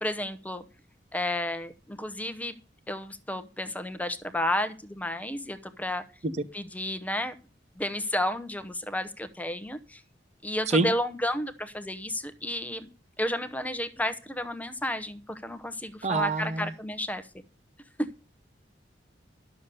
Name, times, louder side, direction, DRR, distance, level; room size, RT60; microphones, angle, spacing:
voice 1, 0.0-0.6 1.1-2.6 2.9-6.0 6.5-7.3 7.8-10.0 10.4-12.9 13.2-17.3 18.0-18.1, left 1 dB, 10° left, 0.9 m, -32 dB
voice 2, 16.0-16.7, right 3 dB, 40° right, 0.8 m, -25 dB
11.5 x 6.9 x 6.8 m
head